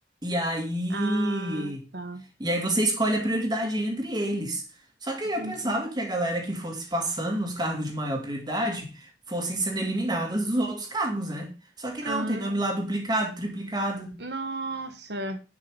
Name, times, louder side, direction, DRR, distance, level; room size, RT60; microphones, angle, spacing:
voice 1, 0.2-1.8 2.4-4.6 5.0-11.5 11.8-14.1, right 1 dB, 25° right, 2.4 m, -28 dB
voice 2, 0.9-2.2 5.4-5.8 12.0-12.6 14.2-15.4, right 2 dB, 65° right, 1.5 m, -34 dB
11.0 x 5.6 x 4.8 m
head